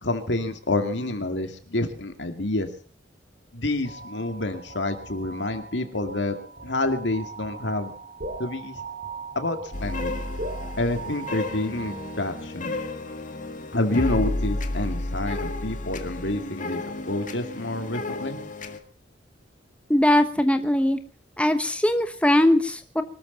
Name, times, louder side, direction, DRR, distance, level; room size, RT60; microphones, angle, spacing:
voice 1, 0.0-2.7 3.5-6.4 6.6-7.9 8.4-8.8 9.4-10.2 10.8-12.8 13.7-16.8 17.1-18.4, left 2 dB, 65° left, 7 dB, 2.4 m, -28 dB
sound 1, 3.9-12.6, right 3 dB, 55° right, 5.4 m, -39 dB
sound 2, 9.7-18.8, left 2 dB, 45° left, 1.9 m, -32 dB
voice 2, 19.9-21.0 21.4-23.0, left 1 dB, 5° left, 8 dB, 1.0 m, -20 dB
24.0 x 13.0 x 4.1 m, 0.40 s
head